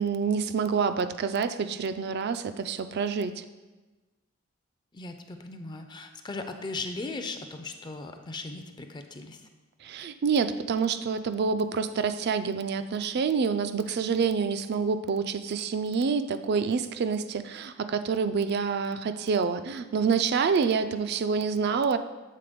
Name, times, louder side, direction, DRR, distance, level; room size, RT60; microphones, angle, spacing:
voice 1, 0.0-3.4 9.8-22.0, right 5 dB, 50° right, 11 dB, 0.4 m, -27 dB
voice 2, 4.9-9.5, left 3 dB, 20° left, 6 dB, 0.4 m, -38 dB
7.6 x 3.8 x 5.1 m, 1.2 s
head